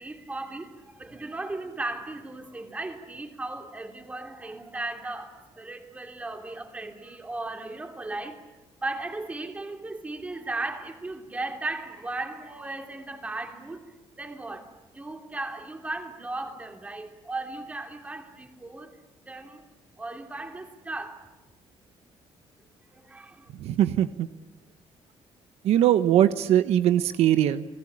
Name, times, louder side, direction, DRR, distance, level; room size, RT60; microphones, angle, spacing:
voice 1, 0.0-8.4 8.8-19.0 19.3-19.6 20.0-21.2 22.9-23.5, right 2 dB, 15° right, 2.8 m, -36 dB
voice 2, 23.5-24.3 25.6-27.7, right 11 dB, 75° right, 1.0 m, -21 dB
29.5 x 20.0 x 8.8 m
cardioid pair, 170°, 11 cm